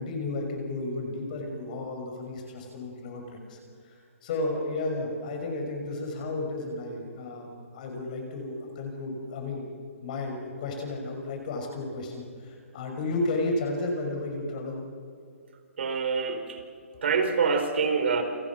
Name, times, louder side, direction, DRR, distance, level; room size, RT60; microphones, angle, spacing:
voice 1, 0.0-9.7 10.0-14.8, left 2 dB, 35° left, 2 dB, 5.8 m, -33 dB
voice 2, 15.8-16.6 17.0-18.2, right 5 dB, 55° right, 7 dB, 4.4 m, -25 dB
29.0 x 27.0 x 6.2 m, 2.3 s
hypercardioid pair, 170°, 8 cm